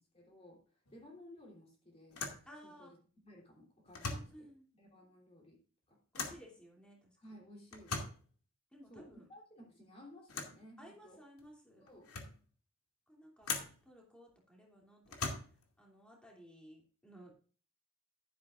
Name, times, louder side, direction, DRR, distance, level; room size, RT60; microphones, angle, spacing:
voice 1, 0.0-2.3 2.6-2.9 3.2-4.5 4.7-5.6 5.9-6.0 7.2-8.0 8.9-11.2 11.8-12.1, left 1 dB, 25° left, -2 dB, 3.2 m, -57 dB
sound 1, 0.9-1.1 1.4-1.5 2.1-2.5 3.9-4.4 6.1-6.5 7.7-8.3 10.3-10.6 11.4-11.5 11.9-12.4 13.4-13.8 15.1-15.7, left 4 dB, 85° left, 2.3 m, -41 dB
voice 2, 2.5-2.9 4.1-4.7 6.1-7.4 8.7-9.3 10.8-11.8 13.1-13.5 13.8-15.3 15.8-17.5, equal, 5° left, -2 dB, 2.7 m, -57 dB
12.0 x 11.0 x 2.5 m, 0.41 s
head